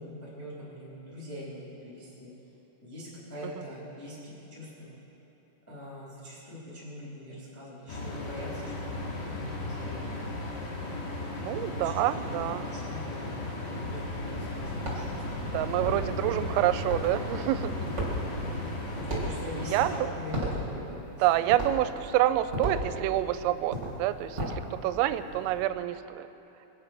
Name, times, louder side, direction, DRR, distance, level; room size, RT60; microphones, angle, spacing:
voice 1, 0.0-2.3 2.8-5.0 5.7-8.7 9.1-10.3 11.5-15.8 18.9-21.0, left 1 dB, 5° left, -8 dB, 2.4 m, -42 dB
sound 1, 7.9-20.0, left 2 dB, 75° left, 4.7 m, -35 dB
voice 2, 11.4-12.7 15.5-17.9 18.2-18.3 19.7-20.1 21.2-26.3, right 13 dB, 85° right, 12 dB, 3.1 m, -27 dB
sound 2, 13.8-25.6, right 1 dB, 20° right, 1.8 m, -38 dB
22.0 x 8.8 x 6.0 m, 3.0 s
omnidirectional pair, 6.0 m